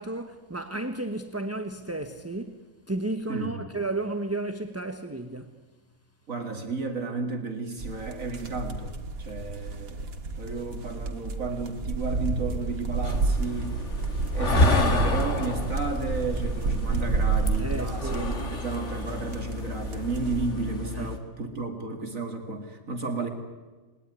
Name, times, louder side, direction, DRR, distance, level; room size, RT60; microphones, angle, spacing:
voice 1, 0.0-5.6 17.6-18.3 20.9-21.1, right 2 dB, 10° right, 1.0 m, -33 dB
voice 2, 6.3-10.1 10.4-13.8 14.3-23.3, right 3 dB, 70° right, 2.6 m, -33 dB
sound 1, 7.8-20.5, right 3 dB, 85° right, 2.2 m, -30 dB
sound 2, 13.0-21.2, left 2 dB, 55° left, 2.4 m, -29 dB
29.0 x 20.5 x 9.7 m
omnidirectional pair, 1.5 m